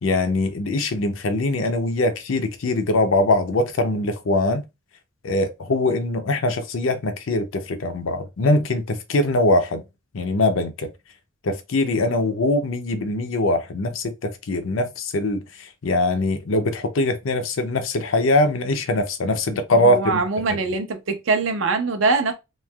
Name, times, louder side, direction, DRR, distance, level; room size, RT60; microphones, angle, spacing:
voice 1, 0.0-4.6 5.2-9.8 10.1-10.9 11.4-20.2 20.5-20.6, left 2 dB, 80° left, 0.5 m, -22 dB
voice 2, 19.8-22.3, right 3 dB, 70° right, 0.6 m, -22 dB
3.1 x 2.7 x 2.3 m
head